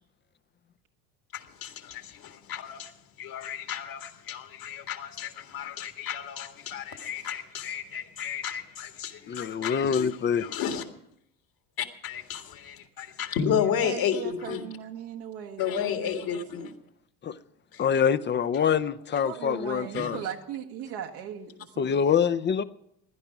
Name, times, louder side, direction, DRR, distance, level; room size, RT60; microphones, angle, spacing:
voice 1, 1.3-2.9 3.2-10.9 11.8-14.6 15.6-16.7 17.7-17.9 19.1-19.2 19.9-20.1, left 8 dB, 55° left, 2.0 m, -32 dB
voice 2, 9.3-10.4 17.2-17.3 17.8-20.2 21.8-22.6, left 7 dB, 25° left, 0.6 m, -25 dB
voice 3, 13.8-16.7 19.2-22.0, right 9 dB, 70° right, 1.3 m, -38 dB
16.0 x 11.0 x 6.0 m
hypercardioid pair, 80°, 41 cm